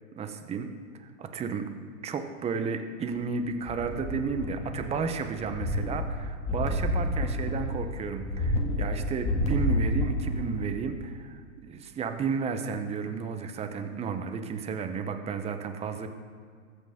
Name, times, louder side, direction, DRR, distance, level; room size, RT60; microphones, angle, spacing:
voice 1, 0.2-0.7 1.0-1.7 2.0-16.1, right 5 dB, 15° right, 7 dB, 0.9 m, -33 dB
sound 1, 3.6-5.1 5.4-10.7 11.0-11.1, left 1 dB, 15° left, 1.8 m, -29 dB
21.5 x 8.3 x 3.6 m, 2.1 s
hypercardioid pair, 115°, 41 cm